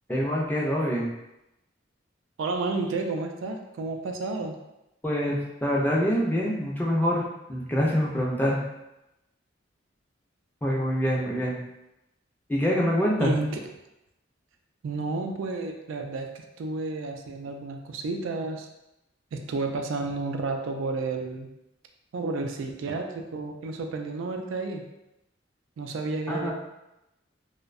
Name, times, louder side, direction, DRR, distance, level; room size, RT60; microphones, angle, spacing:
voice 1, 0.1-1.1 5.0-7.2 7.5-8.6 10.6-11.6 12.5-13.4 26.3-26.5, equal, 10° left, -4 dB, 0.3 m, -25 dB
voice 2, 2.4-4.6 13.2-13.7 14.8-18.7 19.3-21.5 22.1-24.8 25.8-26.5, right 3 dB, 85° right, 4 dB, 0.3 m, -31 dB
2.6 x 2.1 x 2.4 m, 0.91 s
head